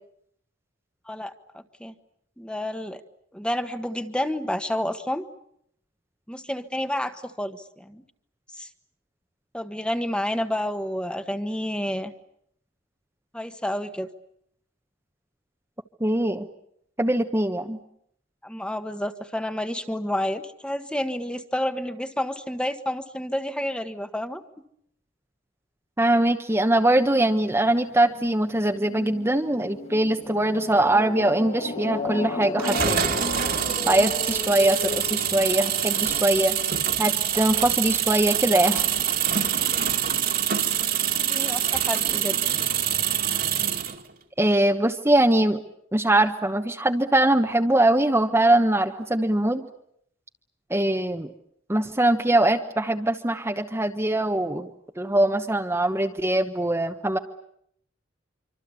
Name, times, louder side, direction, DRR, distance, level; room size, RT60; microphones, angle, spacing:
voice 1, 1.1-1.9 2.4-3.0 3.3-5.2 6.3-8.0 8.6-8.7 9.5-12.1 13.3-14.1 18.4-24.4 41.2-42.4, left 1 dB, 5° left, 9 dB, 1.4 m, -30 dB
voice 2, 16.0-16.5 17.0-17.8 26.0-33.0 33.8-36.6 37.0-38.9 44.4-45.6 45.9-49.6 50.7-51.3 51.7-54.7 55.0-57.2, right 1 dB, 15° right, 4 dB, 1.1 m, -22 dB
sound 1, 26.9-36.2, left 3 dB, 35° left, 1.5 m, -35 dB
sound 2, 32.6-44.0, right 9 dB, 50° right, 2.2 m, -25 dB
26.0 x 25.5 x 8.4 m, 0.71 s
head